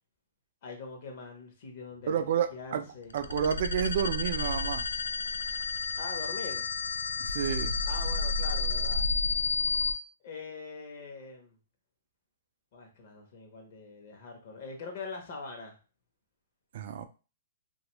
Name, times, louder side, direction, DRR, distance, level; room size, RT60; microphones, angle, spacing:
voice 1, 0.6-2.2 2.5-3.2 6.0-6.7 7.8-9.1 10.2-11.6 12.7-15.8, left 4 dB, 45° left, 0.7 m, -43 dB
voice 2, 2.1-2.8 3.1-4.9 7.2-7.8 16.7-17.1, right 8 dB, 50° right, 0.3 m, -30 dB
sound 1, 3.1-9.9, left 4 dB, 90° left, 0.3 m, -31 dB
2.5 x 2.3 x 3.0 m
hypercardioid pair, 165°, 0 cm